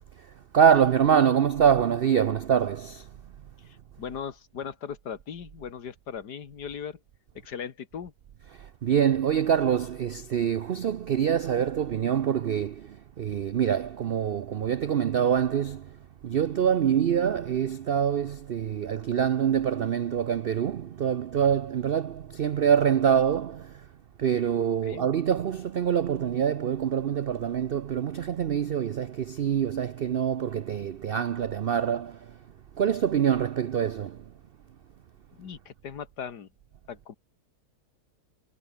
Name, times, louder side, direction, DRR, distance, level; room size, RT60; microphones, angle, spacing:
voice 1, 0.2-3.1 8.5-23.9 24.2-32.4 32.8-34.3, right 8 dB, 75° right, 0.5 m, -25 dB
voice 2, 3.7-7.0 7.3-8.1 24.8-25.1 35.4-36.5 36.9-37.1, left 7 dB, 80° left, 2.2 m, -38 dB
omnidirectional pair, 1.7 m